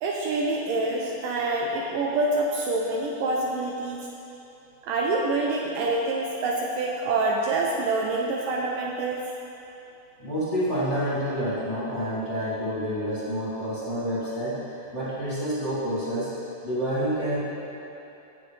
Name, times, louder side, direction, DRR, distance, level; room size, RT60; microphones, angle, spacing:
voice 1, 0.0-4.1 4.8-9.2, right 2 dB, 80° right, -1 dB, 2.0 m, -26 dB
voice 2, 10.2-14.6 14.9-16.3 16.6-17.4, equal, 50° left, -11 dB, 0.8 m, -28 dB
15.5 x 6.9 x 3.2 m, 2.9 s
omnidirectional pair, 4.4 m